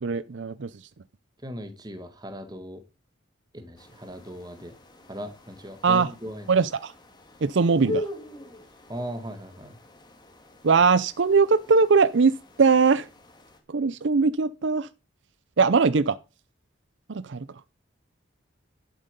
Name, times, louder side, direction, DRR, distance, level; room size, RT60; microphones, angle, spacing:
voice 1, 0.0-0.8 5.8-6.1 6.5-6.9 7.4-8.1 10.6-13.1 13.7-14.9 15.6-16.2 17.1-17.5, right 4 dB, 65° right, 0.5 m, -21 dB
voice 2, 1.4-2.8 3.5-4.8 5.1-6.5 8.9-9.8, equal, 20° right, 1.7 m, -38 dB
sound 1, 3.8-13.6, left 1 dB, 20° left, 2.0 m, -41 dB
11.5 x 8.1 x 5.3 m
head